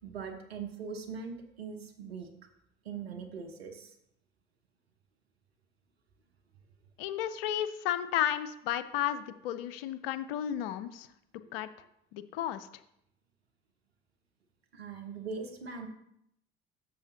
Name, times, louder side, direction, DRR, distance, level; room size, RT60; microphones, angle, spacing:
voice 1, 0.0-2.3 2.8-3.9 11.4-11.6 14.7-15.9, right 5 dB, 85° right, 3 dB, 1.1 m, -41 dB
voice 2, 7.0-11.1 11.5-11.7 12.1-12.7, left 11 dB, 70° left, 13 dB, 0.6 m, -33 dB
13.0 x 6.9 x 2.7 m, 0.77 s
figure-of-eight pair, 60°, 30 cm